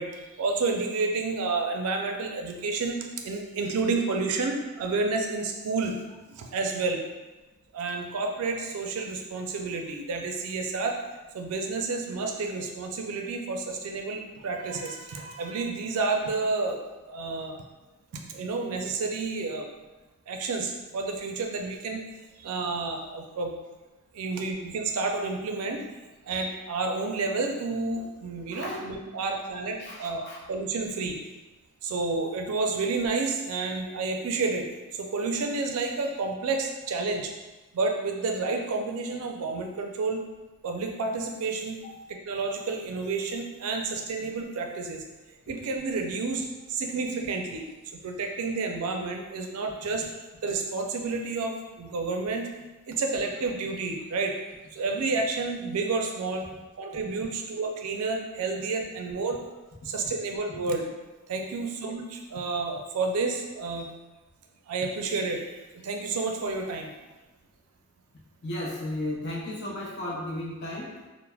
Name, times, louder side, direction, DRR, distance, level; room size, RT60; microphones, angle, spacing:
voice 1, 0.0-6.0 6.3-7.0 7.7-10.9 11.3-16.8 17.1-17.6 18.3-19.7 20.3-22.0 22.4-23.5 24.1-25.9 26.2-30.2 30.5-31.2 31.8-34.7 34.9-37.3 37.7-40.2 40.6-41.8 42.1-45.0 45.5-47.6 47.9-50.1 50.4-52.5 52.9-54.4 54.7-56.5 56.8-59.4 59.8-60.8 61.3-63.9 64.7-65.4 65.7-66.9, right 3 dB, 80° right, 2 dB, 0.4 m, -30 dB
voice 2, 29.8-30.4 41.8-41.9 68.4-71.1, left 1 dB, 50° left, -5 dB, 0.6 m, -35 dB
3.2 x 2.0 x 2.2 m, 1.1 s
head